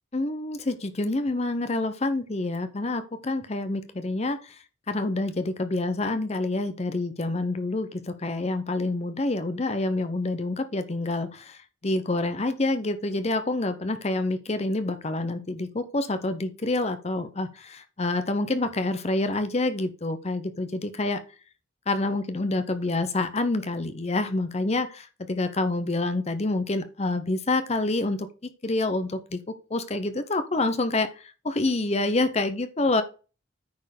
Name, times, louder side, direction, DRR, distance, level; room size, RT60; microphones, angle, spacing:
voice 1, 0.1-21.2 21.9-28.3 28.6-33.0, left 2 dB, 30° left, 10 dB, 0.7 m, -27 dB
9.5 x 4.4 x 6.5 m, 0.35 s
head